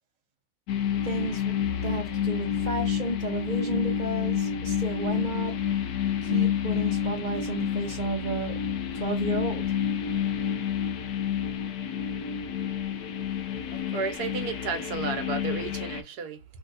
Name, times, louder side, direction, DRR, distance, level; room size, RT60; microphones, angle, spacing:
sound 1, 0.7-16.0, left 8 dB, 75° left, 1.1 m, -29 dB
voice 1, 1.0-5.5 6.2-8.6 8.9-9.8, right 2 dB, 45° right, 0.6 m, -32 dB
voice 2, 13.7-16.4, right 5 dB, 90° right, 1.3 m, -33 dB
3.3 x 2.8 x 2.7 m
omnidirectional pair, 1.7 m